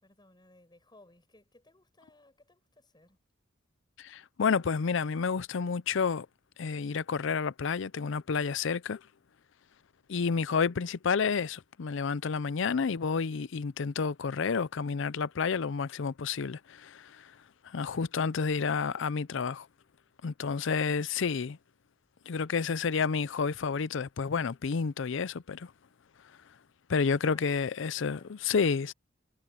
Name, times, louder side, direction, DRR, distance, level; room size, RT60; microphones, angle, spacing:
voice 1, 0.0-3.2 27.3-28.4, left 2 dB, 20° left, 8.0 m, -61 dB
voice 2, 4.0-6.3 6.6-9.0 10.1-17.3 17.6-19.7 20.2-21.6 22.3-25.7 26.9-28.2 28.5-28.9, left 5 dB, 65° left, 0.5 m, -30 dB
head